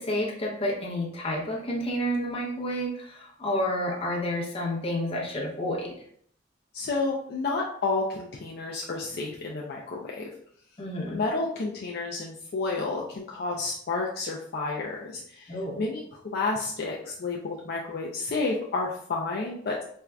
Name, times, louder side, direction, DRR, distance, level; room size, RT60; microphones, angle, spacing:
voice 1, 0.0-5.9 10.8-11.2 15.5-15.8, equal, 30° left, -3 dB, 0.8 m, -30 dB
voice 2, 6.7-10.3 11.1-15.5 15.8-19.8, left 3 dB, 55° left, -3 dB, 0.4 m, -30 dB
4.4 x 2.4 x 2.2 m, 0.64 s
head